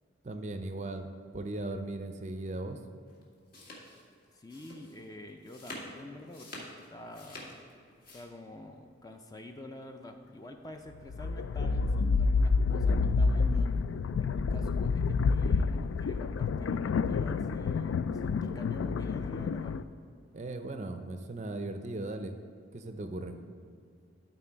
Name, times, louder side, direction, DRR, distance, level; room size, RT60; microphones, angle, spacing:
voice 1, 0.2-2.8 20.3-22.4 22.7-23.4, right 2 dB, 35° right, 7 dB, 0.5 m, -38 dB
sound 1, 3.1-8.2, left 1 dB, 50° left, 1.6 m, -47 dB
voice 2, 4.3-6.6 6.9-7.6 8.1-13.8 14.2-19.8, left 1 dB, 20° left, 5 dB, 0.4 m, -47 dB
sound 2, 11.0-19.8, left 4 dB, 90° left, 0.3 m, -28 dB
12.5 x 4.1 x 4.5 m, 2.4 s
head